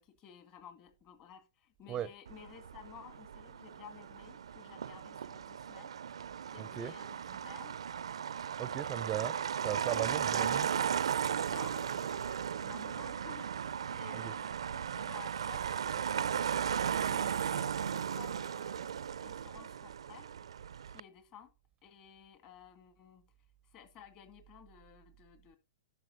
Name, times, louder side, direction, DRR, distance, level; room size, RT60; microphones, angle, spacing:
voice 1, 0.0-7.8 10.1-10.7 11.5-13.6 13.9-20.3 20.6-21.5 21.8-23.3 23.7-25.6, left 9 dB, 35° left, 2.0 m, -55 dB
Motor vehicle (road), 2.3-21.0, right 8 dB, 85° right, 0.4 m, -36 dB
voice 2, 6.6-6.9 8.6-9.4 9.6-10.7 14.1-14.3, right 11 dB, 25° right, 0.5 m, -37 dB
10.5 x 6.7 x 4.1 m
hypercardioid pair, 135°, 3 cm